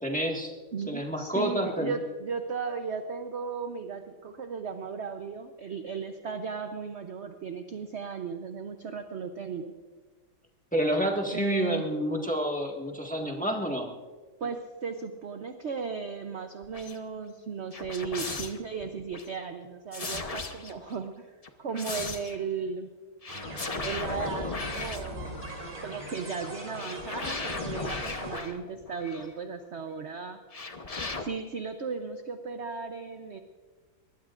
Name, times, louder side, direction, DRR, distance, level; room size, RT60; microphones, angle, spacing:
voice 1, 0.0-0.5 0.9-2.0 10.7-13.9, equal, 5° left, 0 dB, 1.5 m, -29 dB
voice 2, 0.7-9.7 11.2-11.9 14.4-22.9 23.8-25.4 25.8-30.4 31.2-33.4, right 5 dB, 55° right, 6 dB, 0.8 m, -36 dB
sound 1, 16.6-17.0 17.7-19.3 19.9-20.9 21.4-22.4 23.2-25.7 26.7-29.3 30.5-31.2, left 3 dB, 35° left, 0.5 m, -36 dB
sound 2, 23.3-28.4, right 1 dB, 25° right, 3.8 m, -41 dB
23.5 x 20.0 x 2.5 m, 1.3 s
omnidirectional pair, 2.1 m